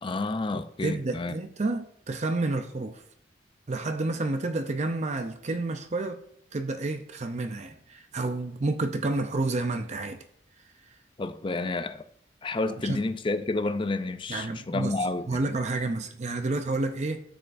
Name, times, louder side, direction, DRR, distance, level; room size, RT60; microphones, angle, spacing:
voice 1, 0.0-1.4 11.2-12.1 12.4-15.5, left 2 dB, 25° left, 0.5 m, -30 dB
voice 2, 0.8-3.0 3.7-6.2 6.5-10.2 12.8-13.0 14.3-14.9 15.3-17.2, right 2 dB, 40° right, 0.5 m, -30 dB
12.0 x 6.8 x 2.6 m
head